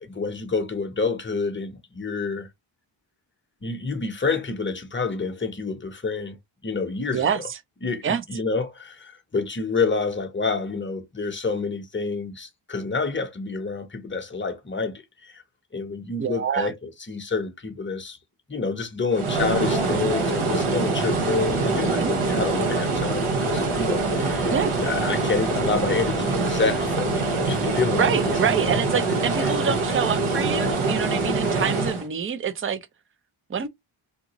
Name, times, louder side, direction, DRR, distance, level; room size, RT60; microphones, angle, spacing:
voice 1, 0.0-2.5 3.6-6.4 6.6-7.4 7.8-15.4 15.7-18.2 18.5-28.8 29.4-29.6, left 4 dB, 25° left, 0.7 m, -28 dB
voice 2, 7.1-7.6 8.0-8.2 16.2-16.7 21.8-22.1 24.5-24.7 28.0-32.8 33.5-33.7, right 7 dB, 25° right, 0.4 m, -26 dB
sound 1, 19.1-32.1, right 3 dB, 80° right, 1.1 m, -24 dB
3.6 x 2.5 x 2.9 m
wide cardioid pair, 115°, 50 cm